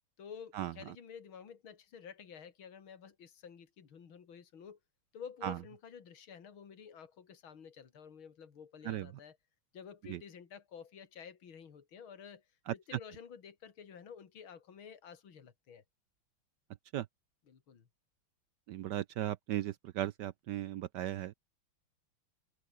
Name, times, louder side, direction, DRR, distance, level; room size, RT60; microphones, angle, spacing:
voice 1, 0.2-4.8 5.1-9.4 9.7-12.5 12.7-15.8 17.5-17.9, left 7 dB, 70° left, 3.1 m, -51 dB
voice 2, 18.7-21.3, right 13 dB, 70° right, 1.0 m, -36 dB
omnidirectional pair, 2.3 m